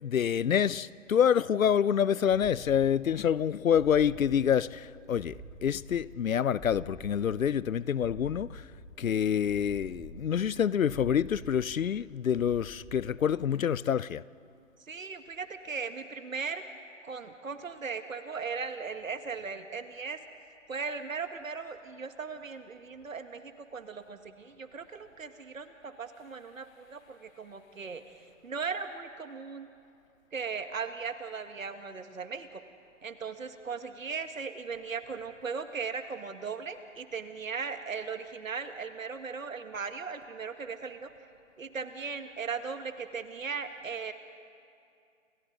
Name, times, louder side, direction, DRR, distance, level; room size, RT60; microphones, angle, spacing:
voice 1, 0.0-8.6 9.0-14.2, left 8 dB, 90° left, 0.7 m, -27 dB
sound 1, 2.3-13.7, right 2 dB, 5° right, 2.5 m, -49 dB
voice 2, 14.8-16.6 17.0-20.2 20.7-28.1 28.4-29.7 30.3-32.6 33.0-41.1 41.6-44.1, right 5 dB, 80° right, 1.8 m, -38 dB
28.5 x 26.0 x 4.0 m
hypercardioid pair, 155°, 39 cm